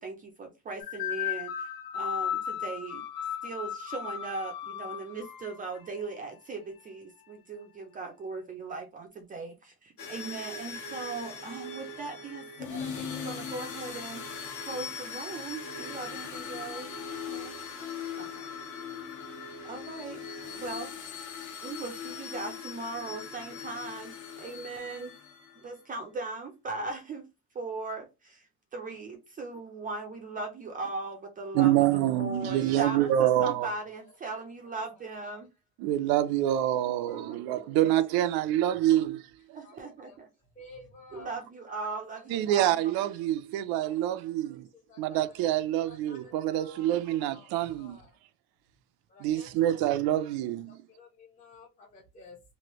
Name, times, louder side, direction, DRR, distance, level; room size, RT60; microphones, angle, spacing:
voice 1, 0.0-3.0 3.4-14.3 14.7-16.9 17.3-17.6 18.2-18.5 19.6-20.2 20.6-20.9 21.6-25.1 25.6-27.3 27.5-28.5 28.7-35.5 37.8-37.9 39.5-40.3 41.1-42.8 44.1-44.5 46.5-47.1, right 3 dB, 25° right, 0.4 m, -39 dB
sound 1, 0.8-5.9, left 9 dB, 90° left, 0.8 m, -35 dB
sound 2, 10.0-25.6, left 5 dB, 55° left, 1.1 m, -40 dB
voice 2, 31.5-33.7 35.8-39.6 41.9-42.0 42.3-44.7 45.0-48.0 49.2-50.8, right 12 dB, 85° right, 0.5 m, -26 dB
voice 3, 33.8-34.1 34.6-35.1 37.0-37.8 38.1-38.2 38.5-38.9 39.6-40.2 40.5-41.4 42.2-42.5 43.9-44.0 44.7-45.4 45.8-48.2 49.1-50.1 50.7-52.4, left 2 dB, 20° left, 0.6 m, -53 dB
3.1 x 2.5 x 2.9 m
cardioid pair, 175°, 36 cm